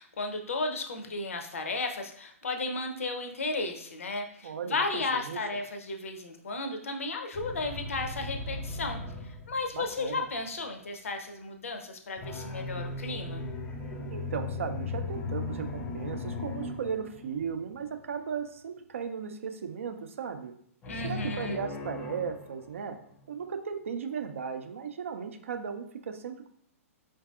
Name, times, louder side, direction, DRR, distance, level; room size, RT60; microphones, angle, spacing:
voice 1, 0.0-13.4 20.9-21.6, left 3 dB, 65° left, 5 dB, 0.6 m, -34 dB
voice 2, 4.4-4.8 5.1-5.4 9.7-10.3 14.1-20.5 21.0-23.0 23.3-26.5, right 6 dB, 60° right, 7 dB, 0.4 m, -36 dB
sound 1, 7.3-10.4 12.2-17.9 20.8-23.3, left 3 dB, 15° left, 0.3 m, -38 dB
4.7 x 2.6 x 2.3 m, 0.66 s
figure-of-eight pair, 120°, 8 cm